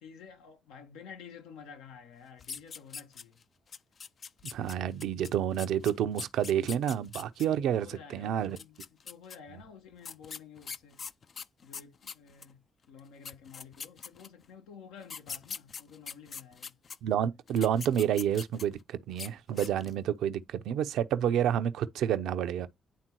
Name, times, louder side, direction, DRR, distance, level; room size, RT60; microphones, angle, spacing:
voice 1, 0.0-3.4 7.5-11.0 11.6-16.8, left 6 dB, 85° left, 1.4 m, -51 dB
sound 1, 2.4-3.4 3.7-7.5 8.4-9.4 10.0-12.5 13.0-13.1 13.2-14.5 15.0-17.0 17.5-18.8 19.1-19.3 19.6-20.0, left 6 dB, 55° left, 0.5 m, -42 dB
voice 2, 4.5-8.6 17.0-22.7, right 10 dB, 75° right, 0.7 m, -29 dB
10.5 x 3.7 x 3.0 m
hypercardioid pair, 50°, 0 cm